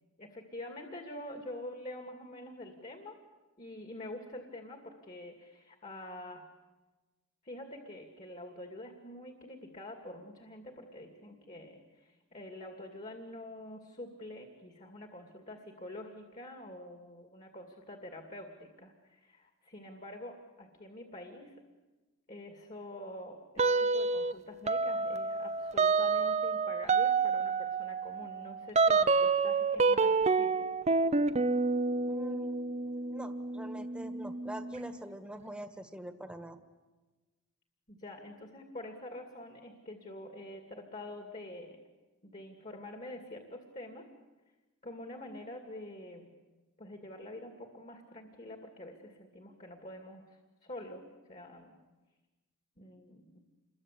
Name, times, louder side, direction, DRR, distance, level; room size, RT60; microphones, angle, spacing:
voice 1, 0.2-3.2 3.6-6.5 7.4-21.6 22.3-30.7 37.9-41.8 42.2-44.1 44.8-46.3 46.8-51.0 51.3-51.8 52.8-53.5, left 1 dB, 35° left, 4 dB, 2.4 m, -46 dB
sound 1, 23.6-24.3 24.7-35.0, right 4 dB, 30° right, 0.8 m, -29 dB
voice 2, 32.1-36.6, right 1 dB, 5° right, 7 dB, 1.6 m, -45 dB
28.0 x 22.5 x 8.3 m, 1.2 s
head